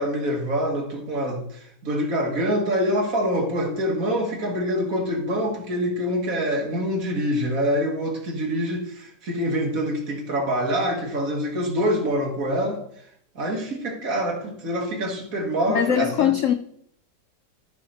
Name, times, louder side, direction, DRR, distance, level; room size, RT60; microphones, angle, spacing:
voice 1, 0.0-12.8 13.4-16.3, equal, 50° right, 1 dB, 2.0 m, -25 dB
voice 2, 15.7-16.5, left 10 dB, 85° left, 9 dB, 0.6 m, -21 dB
13.5 x 4.8 x 4.4 m, 0.68 s
omnidirectional pair, 1.9 m